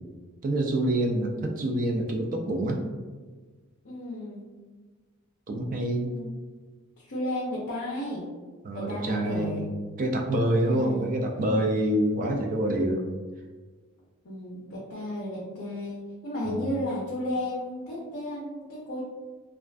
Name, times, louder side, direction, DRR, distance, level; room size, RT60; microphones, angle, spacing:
voice 1, 0.4-2.8 5.5-6.2 8.6-9.7 10.0-13.0 16.4-16.6, right 1 dB, 40° right, 2 dB, 0.3 m, -26 dB
voice 2, 3.8-4.4 5.9-6.3 7.0-8.3 8.7-9.6 10.6-11.1 14.2-19.0, left 1 dB, 55° left, -6 dB, 0.5 m, -33 dB
2.4 x 2.4 x 2.2 m, 1.4 s
head